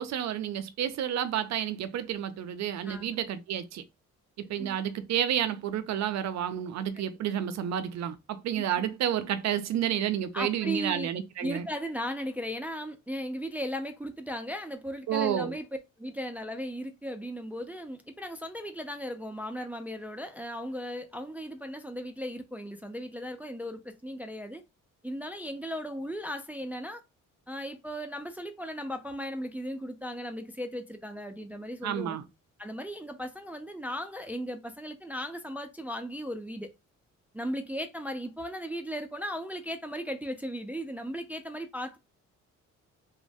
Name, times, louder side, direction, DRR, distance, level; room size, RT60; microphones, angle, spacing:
voice 1, 0.0-3.8 4.4-11.7 15.1-15.6 31.8-32.2, right 10 dB, 65° right, 0.5 m, -30 dB
voice 2, 10.3-11.1 11.4-15.7 16.0-24.6 25.0-27.0 27.5-32.2 32.6-36.7 37.3-42.0, equal, 5° right, 0.3 m, -36 dB
3.0 x 2.1 x 2.6 m
cardioid pair, 90°, 30 cm